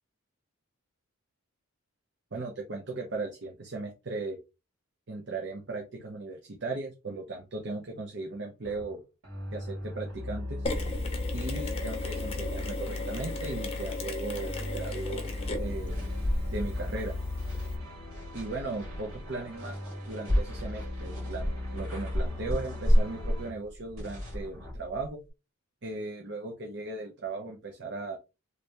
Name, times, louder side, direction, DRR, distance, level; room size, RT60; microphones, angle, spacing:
voice 1, 2.3-4.4 5.1-9.0 9.5-10.7 11.3-15.3 15.6-15.9 16.5-17.1 18.3-19.8 20.1-25.2 25.8-28.2, right 3 dB, 55° right, 1 dB, 0.7 m, -37 dB
sound 1, 8.6-8.9 9.2-14.0 14.4-23.5, left 2 dB, 90° right, 1.9 m, -39 dB
Mechanisms, 10.6-17.8, left 2 dB, 25° left, 0.6 m, -35 dB
sound 2, 15.4-25.3, equal, 70° right, 2.3 m, -32 dB
3.3 x 2.6 x 3.3 m, 0.27 s
head